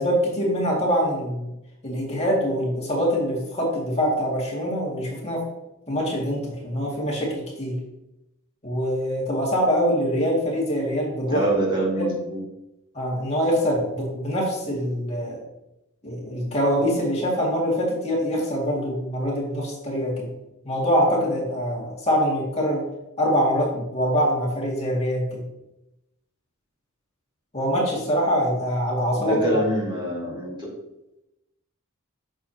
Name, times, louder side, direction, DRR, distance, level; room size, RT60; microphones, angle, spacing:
voice 1, 0.0-1.5 1.8-5.4 5.9-7.8 8.6-11.5 12.0-12.2 12.9-15.4 16.0-20.3 20.6-22.8 23.2-25.4 27.5-29.6, equal, 30° left, -3 dB, 2.2 m, -24 dB
voice 2, 11.3-12.4 29.2-30.7, right 1 dB, 20° right, -4 dB, 1.9 m, -25 dB
8.6 x 6.6 x 2.9 m, 0.90 s
head